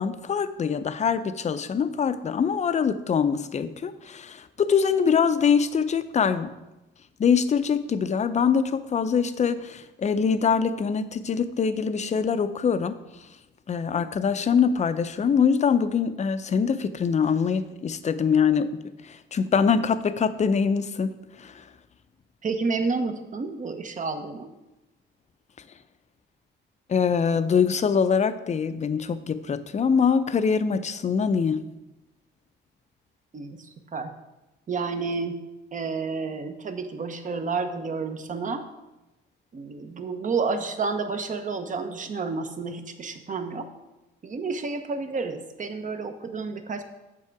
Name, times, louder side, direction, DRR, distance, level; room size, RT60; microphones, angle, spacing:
voice 1, 0.0-6.5 7.2-13.0 13.7-18.7 19.0-21.5 26.9-31.6, left 6 dB, 35° left, 12 dB, 0.5 m, -24 dB
voice 2, 22.4-24.5 33.3-34.1 34.7-35.4 35.7-38.6 39.5-43.7 44.2-46.8, right 4 dB, 40° right, 8 dB, 0.9 m, -30 dB
7.7 x 5.6 x 4.7 m, 1.0 s
cardioid pair, 90°, 20 cm